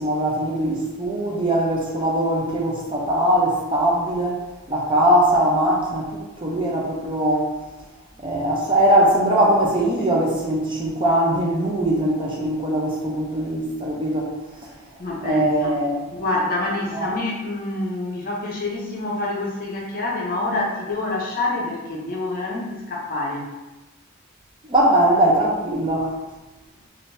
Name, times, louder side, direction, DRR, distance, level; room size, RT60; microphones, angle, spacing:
voice 1, 0.0-7.5 8.2-14.3 14.6-14.7 15.2-15.9 24.7-26.2, right 1 dB, 20° right, -3 dB, 0.5 m, -21 dB
voice 2, 14.7-23.5, left 2 dB, 40° left, -2 dB, 0.6 m, -27 dB
3.6 x 2.5 x 2.6 m, 1.1 s
head